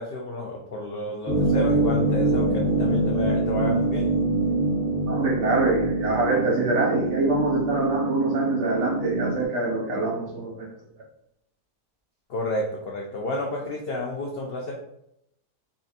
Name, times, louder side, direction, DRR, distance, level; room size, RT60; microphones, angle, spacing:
voice 1, 0.0-4.1 12.3-14.7, left 1 dB, 70° left, -1 dB, 0.5 m, -31 dB
sound 1, 1.2-9.4, right 2 dB, 20° left, 0.5 m, -25 dB
voice 2, 5.1-10.7, right 2 dB, 55° right, -1 dB, 1.0 m, -24 dB
4.1 x 2.7 x 2.4 m, 0.76 s
omnidirectional pair, 1.6 m